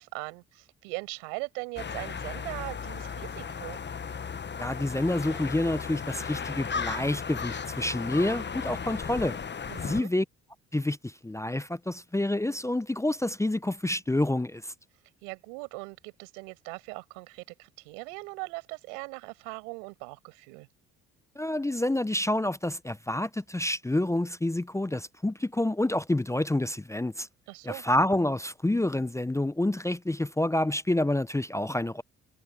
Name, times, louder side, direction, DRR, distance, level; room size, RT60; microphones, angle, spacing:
voice 1, 0.0-3.8 9.7-10.1 15.2-20.7 27.5-27.8, right 34 dB, 90° right, 6.5 m, -40 dB
sound 1, 1.8-10.0, left 6 dB, 30° left, 1.1 m, -35 dB
voice 2, 4.6-9.4 9.8-10.2 10.7-14.7 21.4-27.3 27.6-32.0, left 1 dB, 10° left, 0.7 m, -28 dB
hypercardioid pair, 55°, 34 cm